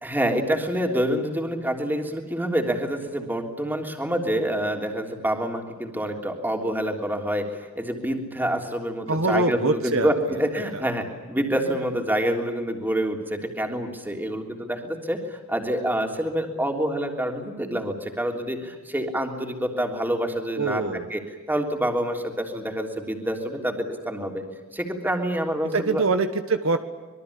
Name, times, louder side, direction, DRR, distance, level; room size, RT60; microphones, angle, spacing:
voice 1, 0.0-20.8 21.1-21.2 21.5-24.4 24.7-26.0, right 1 dB, 10° right, 3 dB, 3.3 m, -27 dB
voice 2, 9.1-10.4 10.7-10.9 20.6-21.1 25.7-26.8, right 3 dB, 65° right, 9 dB, 1.5 m, -24 dB
26.0 x 22.5 x 8.6 m, 1.3 s
head